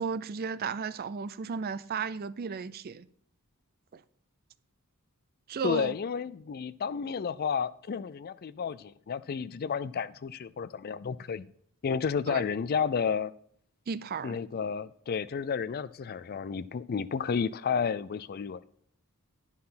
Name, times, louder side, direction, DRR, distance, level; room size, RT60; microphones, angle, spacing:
voice 1, 0.0-3.1 3.9-4.0 5.5-5.9 12.3-12.5 13.9-14.4, right 5 dB, 45° right, 0.4 m, -34 dB
voice 2, 5.6-11.5 11.8-13.3 14.2-18.6, left 6 dB, 45° left, 0.4 m, -31 dB
11.0 x 5.7 x 5.7 m
head